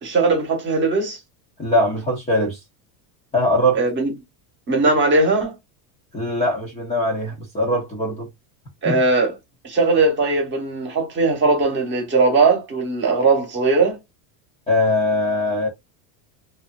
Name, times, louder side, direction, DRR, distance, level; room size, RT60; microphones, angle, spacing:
voice 1, 0.0-1.2 3.7-4.1 4.7-5.5 8.8-9.3 9.6-14.0, right 3 dB, 25° right, 1.2 m, -19 dB
voice 2, 1.6-2.6 3.3-3.8 6.1-8.3 8.8-9.0 14.7-15.7, left 1 dB, 15° left, 0.8 m, -21 dB
3.2 x 2.7 x 2.4 m
cardioid pair, 155°, 48 cm